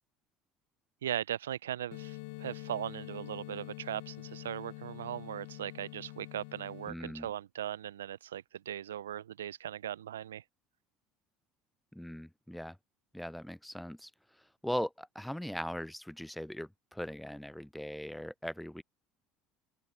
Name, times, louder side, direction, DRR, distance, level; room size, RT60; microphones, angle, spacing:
voice 1, 1.0-10.4, right 11 dB, 85° right, 0.5 m, -39 dB
sound 1, 1.9-6.9, left 25 dB, 75° left, 0.8 m, -46 dB
voice 2, 6.9-7.3 11.9-12.8 13.1-14.1 14.6-18.8, equal, 5° left, 0.7 m, -39 dB
open air
hypercardioid pair, 70°, 0 cm